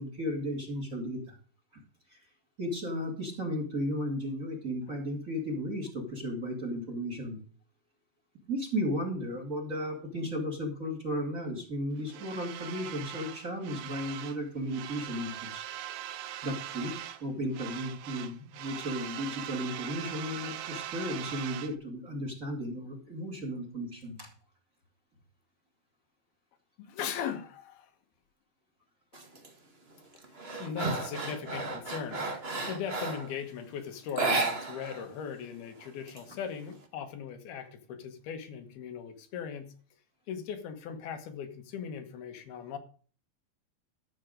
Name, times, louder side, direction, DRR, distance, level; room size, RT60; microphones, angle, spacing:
voice 1, 0.0-1.3 1.7-1.8 2.1-2.2 2.6-7.4 8.5-15.6 16.4-16.9 17.2-24.3, equal, 25° right, 2 dB, 2.4 m, -34 dB
sound 1, 12.1-14.4 14.7-17.3 17.5-21.7, right 11 dB, 80° right, 1.7 m, -41 dB
voice 2, 26.8-27.9 30.6-39.7 40.3-42.8, left 7 dB, 85° left, 7 dB, 3.3 m, -39 dB
sound 2, 29.1-29.5 29.9-33.3 34.1-35.0 35.3-35.4 35.8-36.7, right 3 dB, 45° right, 0.8 m, -33 dB
13.0 x 7.8 x 5.1 m, 0.41 s
omnidirectional pair, 4.3 m